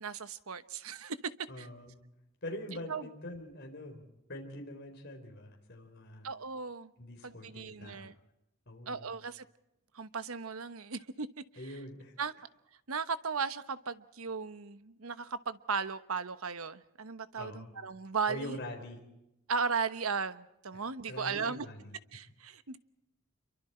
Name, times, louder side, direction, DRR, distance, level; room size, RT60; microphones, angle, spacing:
voice 1, 0.0-1.2 1.6-1.7 2.9-3.1 6.2-6.9 7.2-8.1 8.9-9.4 9.9-11.3 12.2-12.3 12.9-18.6 19.5-21.7 22.1-22.8, right 5 dB, 85° right, 1.1 m, -36 dB
voice 2, 1.5-2.0 2.4-4.0 4.3-6.3 7.0-8.1 8.7-9.1 11.6-12.1 17.3-17.7 18.3-19.0 20.7-20.8 21.1-22.0, left 1 dB, 50° left, 4.2 m, -44 dB
27.5 x 23.5 x 4.4 m
head